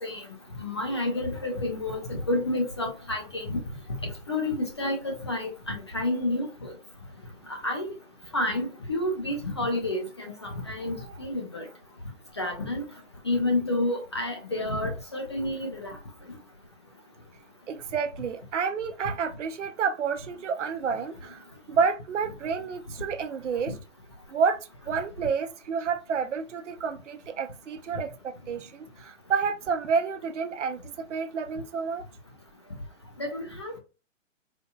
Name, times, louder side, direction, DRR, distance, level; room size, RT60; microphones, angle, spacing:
voice 1, 0.6-3.6 4.0-6.7 7.5-7.9 8.3-11.7 12.4-12.8 13.2-16.0 23.7-23.8 33.2-33.8, left 1 dB, 25° left, 0.4 m, -30 dB
voice 2, 17.7-23.7 24.3-32.0, right 6 dB, 65° right, 0.7 m, -30 dB
4.2 x 2.6 x 2.2 m
hypercardioid pair, 150°, 38 cm